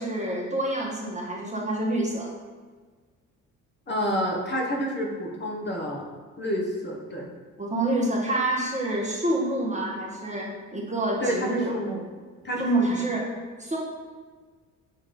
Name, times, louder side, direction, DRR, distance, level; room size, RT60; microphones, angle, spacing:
voice 1, 0.0-2.3 7.6-11.7 12.6-13.3 13.6-13.8, right 1 dB, 20° right, -3 dB, 1.4 m, -27 dB
voice 2, 3.9-6.1 6.4-7.3 11.2-12.0 12.4-13.0, equal, 25° left, -2 dB, 1.5 m, -29 dB
7.7 x 3.2 x 3.9 m, 1.5 s
figure-of-eight pair, 50°, 39 cm